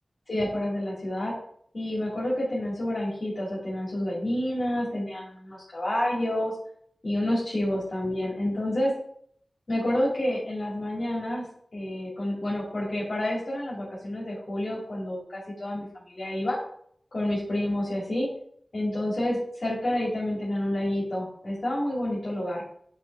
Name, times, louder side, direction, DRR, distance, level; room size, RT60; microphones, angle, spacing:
voice 1, 0.3-1.3 1.7-6.5 7.0-8.9 9.7-11.5 11.7-16.6 17.1-18.3 18.7-22.6, left 1 dB, 65° left, -7 dB, 2.4 m, -29 dB
8.2 x 3.2 x 4.6 m, 0.65 s
cardioid pair, 45°, 0 cm